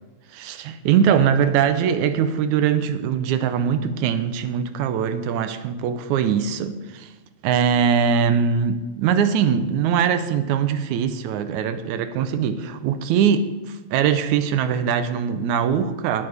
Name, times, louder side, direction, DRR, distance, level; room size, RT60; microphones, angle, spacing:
voice 1, 0.3-7.1 7.4-16.3, right 7 dB, 90° right, 2.1 m, -22 dB
19.0 x 8.8 x 3.4 m
omnidirectional pair, 3.4 m